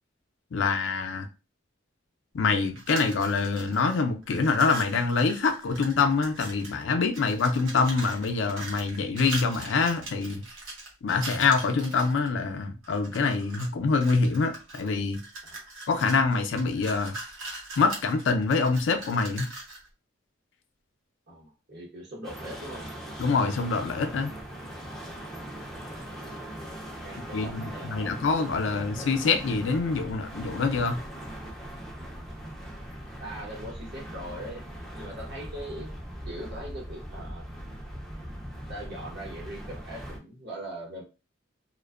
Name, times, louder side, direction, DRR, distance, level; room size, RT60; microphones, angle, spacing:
voice 1, 0.5-1.3 2.3-10.4 11.0-15.2 15.9-17.2 17.8-19.5 23.2-24.3 27.3-31.0, left 4 dB, 65° left, 0.4 m, -25 dB
sound 1, 2.7-3.9 4.2-6.8 7.1-12.3 12.8-13.7 14.0-19.9, right 2 dB, 85° right, 0.8 m, -41 dB
voice 2, 21.3-22.9 27.0-28.2 28.7-29.1 33.2-34.7 35.0-35.9 36.2-37.4 38.7-41.0, right 1 dB, 55° right, 0.9 m, -41 dB
sound 2, 22.2-40.2, equal, ahead, 0.4 m, -40 dB
2.5 x 2.1 x 2.3 m
head